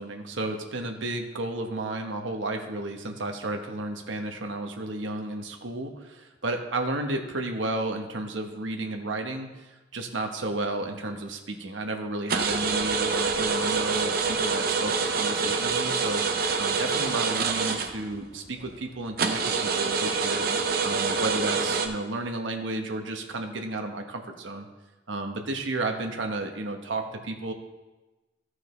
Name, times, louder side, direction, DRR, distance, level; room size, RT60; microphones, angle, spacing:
voice 1, 0.0-16.2 16.6-20.5 20.8-24.7 25.1-27.5, right 2 dB, 85° right, 4 dB, 1.1 m, -32 dB
sound 1, 12.3-18.3 18.7-18.8 19.2-21.9, right 5 dB, 50° right, 0.7 m, -26 dB
14.5 x 6.3 x 3.2 m, 1.1 s
head